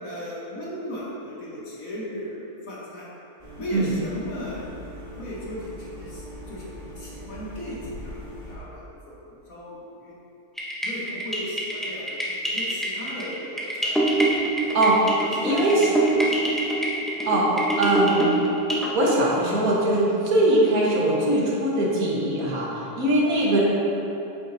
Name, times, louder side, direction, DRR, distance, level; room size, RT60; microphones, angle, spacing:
voice 1, 0.0-3.1 3.6-6.7 7.0-8.2 8.5-10.1 10.8-14.0 14.6-14.8 15.2-16.5 22.7-22.8, equal, 60° left, -6 dB, 1.6 m, -36 dB
sound 1, 3.4-8.6, left 1 dB, 40° left, 1.8 m, -41 dB
sound 2, 10.6-18.9, right 1 dB, ahead, 0.4 m, -26 dB
voice 2, 15.4-15.9 17.3-18.3 18.9-22.7 23.0-23.6, right 1 dB, 65° right, -5 dB, 1.8 m, -21 dB
9.2 x 7.1 x 2.8 m, 2.9 s
omnidirectional pair, 1.7 m